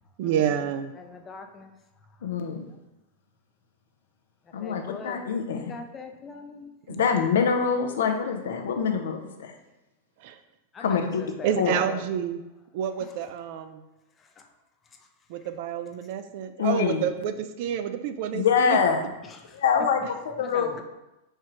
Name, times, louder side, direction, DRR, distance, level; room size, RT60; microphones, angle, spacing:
voice 1, 0.2-0.9 6.9-7.0 10.2-10.4 11.4-12.4 12.7-13.8 15.3-18.8, right 9 dB, 60° right, 9 dB, 0.4 m, -28 dB
voice 2, 1.0-1.7 2.2-2.3 4.6-6.7 10.7-12.1 13.0-13.1 14.2-14.5 19.3-19.6 20.4-20.8, left 4 dB, 25° left, 5 dB, 0.6 m, -42 dB
voice 3, 2.2-2.7 4.5-5.7 6.9-9.5 10.8-11.2 11.6-11.8 16.6-17.1 18.3-19.1 19.5-20.7, left 6 dB, 80° left, 5 dB, 0.6 m, -25 dB
4.5 x 2.4 x 4.5 m, 0.97 s
hypercardioid pair, 115°, 0 cm